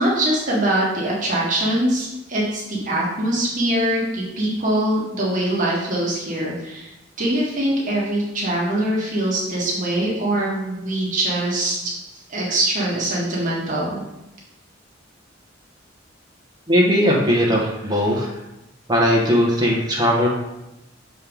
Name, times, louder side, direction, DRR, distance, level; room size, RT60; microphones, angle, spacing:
voice 1, 0.0-6.9 7.2-11.8 12.0-14.0, right 1 dB, 40° right, -5 dB, 1.6 m, -23 dB
voice 2, 16.7-18.3 18.9-20.3, equal, 20° right, -3 dB, 1.4 m, -18 dB
6.6 x 4.3 x 3.6 m, 0.92 s
head